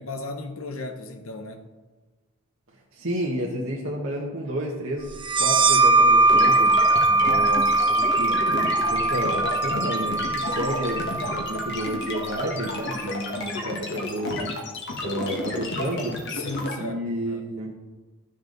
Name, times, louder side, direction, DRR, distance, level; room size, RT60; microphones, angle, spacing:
voice 1, 0.0-1.6 7.1-7.5 16.3-17.4, left 3 dB, 90° left, 6 dB, 1.1 m, -36 dB
voice 2, 2.9-6.7 7.2-14.5 15.0-16.2 16.8-17.7, right 1 dB, 70° right, -3 dB, 1.5 m, -31 dB
sound 1, 5.2-12.5, right 2 dB, 25° right, 0.7 m, -21 dB
sound 2, 6.3-16.7, left 2 dB, 60° left, 1.8 m, -31 dB
12.5 x 7.0 x 4.0 m, 1.3 s
head